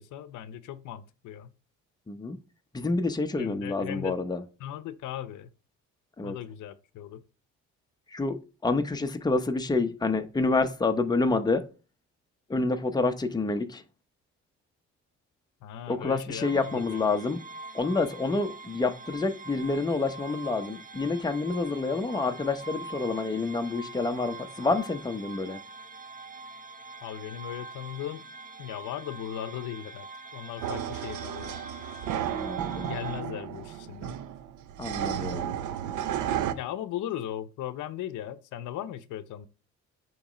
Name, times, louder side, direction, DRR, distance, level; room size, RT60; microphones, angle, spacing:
voice 1, 0.0-1.5 3.4-4.1 4.6-5.5 6.2-7.2 15.6-17.1 27.0-28.3 28.6-31.6 32.8-34.1 36.5-39.5, left 11 dB, 80° left, 0.6 m, -38 dB
voice 2, 2.1-2.4 2.7-4.4 6.2-6.3 8.1-8.4 8.6-11.6 12.5-13.8 15.9-17.4 17.7-25.6 32.4-32.9 34.8-35.5, left 3 dB, 15° left, 0.7 m, -28 dB
sound 1, 16.4-33.2, right 3 dB, 25° right, 0.7 m, -44 dB
sound 2, 30.6-36.5, right 10 dB, 80° right, 0.6 m, -33 dB
7.1 x 3.1 x 4.9 m
cardioid pair, 90°, 30 cm